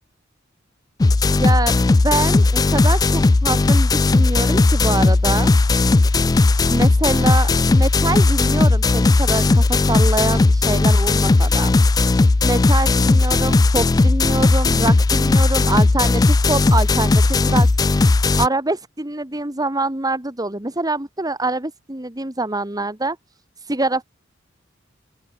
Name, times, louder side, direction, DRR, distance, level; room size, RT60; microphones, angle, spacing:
sound 1, 1.0-18.5, left 3 dB, 20° left, 0.3 m, -16 dB
voice 1, 1.4-5.5 6.7-11.7 12.4-23.2 23.6-24.0, right 2 dB, 20° right, 2.2 m, -25 dB
open air
head